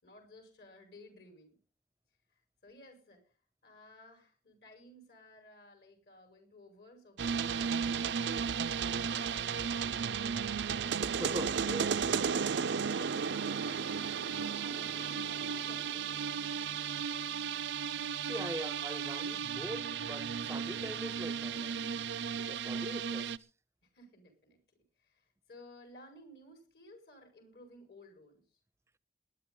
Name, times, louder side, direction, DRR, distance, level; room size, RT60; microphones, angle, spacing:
voice 1, 0.0-1.6 2.3-3.3 3.6-11.0 12.6-13.4 13.6-16.2 22.6-23.0 23.8-24.6 25.0-28.4, left 1 dB, 65° left, 5.6 m, -56 dB
sound 1, 7.2-23.4, right 6 dB, 90° right, 0.6 m, -34 dB
voice 2, 11.0-12.0 18.2-21.8 22.4-23.5, right 1 dB, 15° right, 0.6 m, -42 dB
21.0 x 11.0 x 3.9 m
head